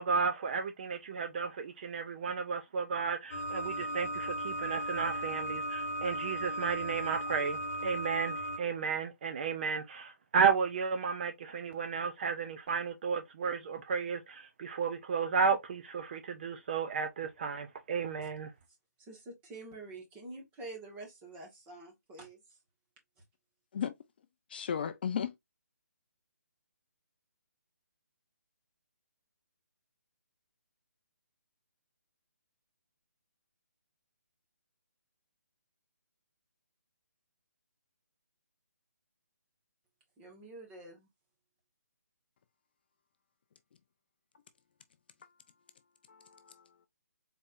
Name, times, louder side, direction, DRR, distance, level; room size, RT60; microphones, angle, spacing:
voice 1, 0.0-18.5, right 5 dB, 35° right, 0.5 m, -33 dB
sound 1, 3.3-8.6, right 1 dB, 60° left, 1.1 m, -36 dB
voice 2, 19.0-22.6 40.2-41.1, right 2 dB, 15° right, 1.4 m, -47 dB
voice 3, 24.5-25.4 45.2-45.4 46.1-46.9, left 8 dB, 35° left, 0.4 m, -36 dB
4.1 x 3.5 x 2.5 m
hypercardioid pair, 155°, 9 cm